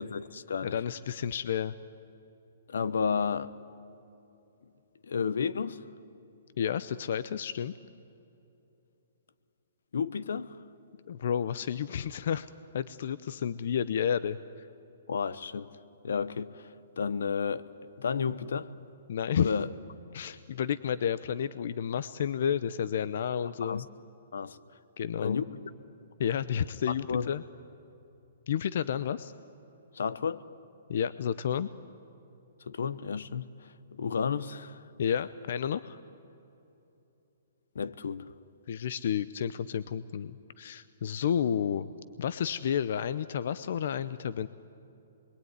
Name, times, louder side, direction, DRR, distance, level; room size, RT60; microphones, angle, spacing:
voice 1, 0.0-0.8 2.7-3.5 5.0-5.8 9.9-10.6 15.1-15.7 16.0-16.7 17.0-17.6 18.0-18.7 19.4-19.7 23.6-23.8 24.3-24.6 25.2-25.4 27.1-27.3 29.9-30.4 32.7-34.8 37.7-38.3, left 6 dB, 80° left, 1.0 m, -32 dB
voice 2, 0.6-1.7 6.6-7.7 11.1-14.7 19.1-19.5 20.1-23.9 25.0-25.4 26.2-27.4 28.5-29.3 30.9-31.7 35.0-36.0 38.7-41.9 42.2-44.5, left 8 dB, 55° left, 0.7 m, -31 dB
27.5 x 22.0 x 9.5 m
hypercardioid pair, 165°, 0 cm